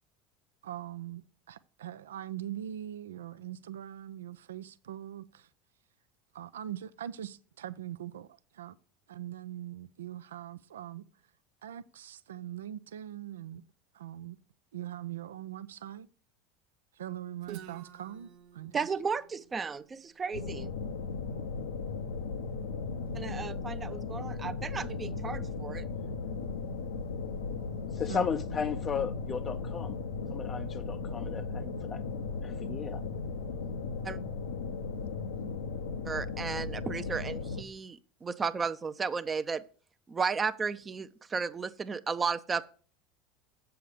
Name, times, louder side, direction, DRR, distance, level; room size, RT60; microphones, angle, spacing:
voice 1, 0.6-1.2 1.5-5.5 6.3-8.8 9.1-11.0 11.6-13.6 13.9-14.4 14.7-16.1 16.9-18.9 28.1-28.3, right 11 dB, 85° right, 0.4 m, -42 dB
Guitar, 17.4-21.2, right 11 dB, 65° right, 0.7 m, -52 dB
voice 2, 18.7-20.7 23.1-25.9 34.0-34.2 36.0-39.6 40.1-42.7, right 5 dB, 25° right, 0.5 m, -34 dB
sound 1, 20.3-37.6, left 4 dB, 85° left, 0.7 m, -36 dB
voice 3, 27.9-30.0 30.3-32.0 32.4-33.0, left 6 dB, 35° left, 0.4 m, -35 dB
7.6 x 6.9 x 5.0 m
hypercardioid pair, 85°, 0 cm